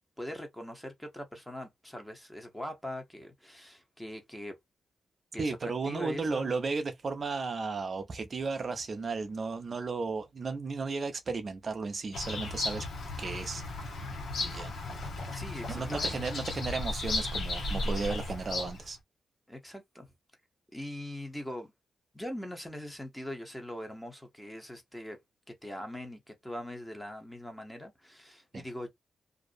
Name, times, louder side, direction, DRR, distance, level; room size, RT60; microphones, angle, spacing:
voice 1, 0.2-4.5 5.3-6.5 15.3-16.1 19.5-20.1 20.7-21.7 22.1-25.2 25.6-28.9, left 1 dB, 5° left, 0.8 m, -42 dB
voice 2, 5.4-12.9 13.2-13.6 14.3-14.7 15.7-19.0 28.5-28.6, right 4 dB, 50° right, 0.4 m, -34 dB
Bird vocalization bird call bird song, 12.1-18.9, left 2 dB, 70° left, 0.8 m, -35 dB
2.5 x 2.0 x 2.4 m
cardioid pair, 75°, 0 cm